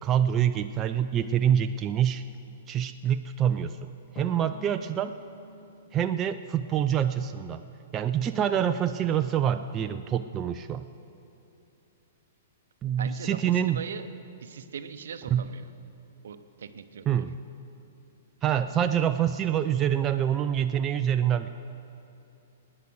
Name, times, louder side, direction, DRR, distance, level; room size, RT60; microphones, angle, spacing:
voice 1, 0.0-2.2 2.7-3.9 4.1-5.1 5.9-7.6 7.9-10.8 12.8-13.8 15.3-15.5 17.1-17.4 18.4-21.5, right 9 dB, 25° right, 8 dB, 0.4 m, -26 dB
Drum, 4.2-7.1, left 2 dB, 35° left, 3.1 m, -47 dB
voice 2, 13.0-14.1 14.4-15.7 16.2-17.1, right 7 dB, 65° right, 10 dB, 0.8 m, -40 dB
18.5 x 9.8 x 6.3 m, 2.9 s
figure-of-eight pair, 110°, 0 cm